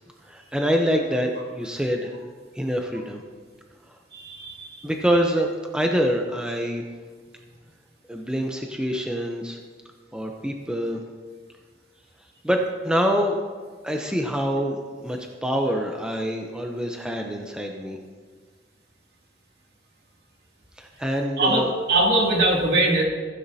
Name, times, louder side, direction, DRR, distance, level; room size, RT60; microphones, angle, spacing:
voice 1, 0.2-2.2 2.5-3.2 4.8-6.8 8.1-9.6 10.1-11.0 12.4-13.4 13.8-18.0 20.8-21.7, equal, 5° right, 2 dB, 0.7 m, -25 dB
voice 2, 4.1-4.8 21.4-23.0, right 2 dB, 60° right, -2 dB, 2.5 m, -22 dB
15.0 x 10.0 x 2.8 m, 1.5 s
head